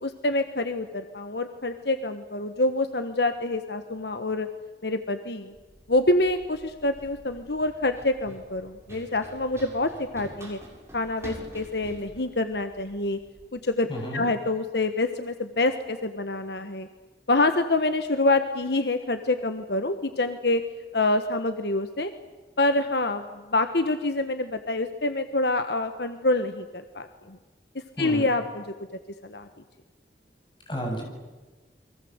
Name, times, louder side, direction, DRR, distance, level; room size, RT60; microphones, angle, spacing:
voice 1, 0.0-4.5 4.8-5.5 5.9-10.6 10.9-13.2 13.5-13.9 14.1-16.9 17.3-20.6 20.9-22.1 22.6-23.2 23.5-27.4 28.0-28.6 29.2-29.5, left 2 dB, 65° left, 8 dB, 1.4 m, -26 dB
Run, 5.5-13.5, equal, 15° right, 7.0 m, -47 dB
voice 2, 13.9-14.3 28.0-28.3 30.7-31.0, right 1 dB, 25° left, 1 dB, 8.0 m, -31 dB
29.5 x 23.5 x 8.1 m, 1.2 s
head